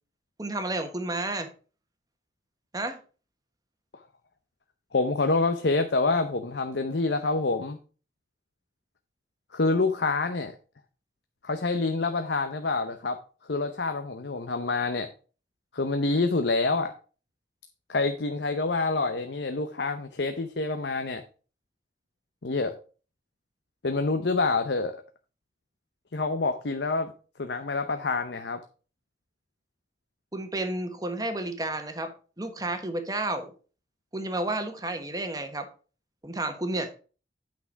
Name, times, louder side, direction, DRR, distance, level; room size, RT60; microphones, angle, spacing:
voice 1, 0.4-1.5 2.7-3.0 30.3-32.1 32.4-33.5 34.1-35.7 36.2-36.9, right 2 dB, 20° right, 7 dB, 1.2 m, -31 dB
voice 2, 4.9-7.8 9.5-10.5 11.4-13.2 13.5-15.1 15.7-16.9 17.9-21.2 22.4-22.7 23.8-25.0 26.1-27.1 27.4-28.6, left 3 dB, 70° left, 8 dB, 0.8 m, -27 dB
8.7 x 6.0 x 4.6 m, 0.37 s
head